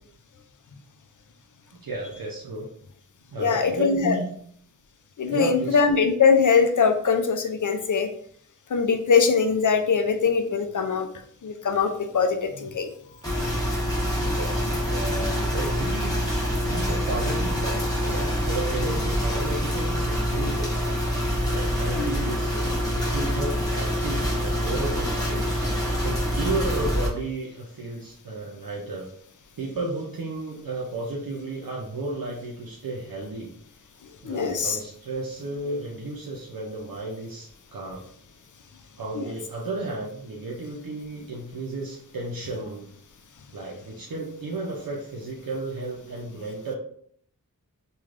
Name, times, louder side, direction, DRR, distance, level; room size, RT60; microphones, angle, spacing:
voice 1, 1.8-2.7 3.3-4.3 5.3-5.8 14.2-16.2 16.6-20.9 21.5-25.5 26.0-29.0 29.6-33.5 34.2-38.0 39.0-42.8 43.5-46.8, right 2 dB, 80° right, -3 dB, 0.6 m, -33 dB
voice 2, 3.4-4.2 5.2-8.1 8.7-11.1 11.4-12.9 13.4-14.0 21.9-22.1 34.2-34.8 39.1-39.3, left 5 dB, 60° left, 6 dB, 0.5 m, -22 dB
sound 1, 13.2-27.1, equal, 10° left, 1.0 m, -26 dB
3.2 x 2.3 x 2.4 m, 0.62 s
wide cardioid pair, 45°, 34 cm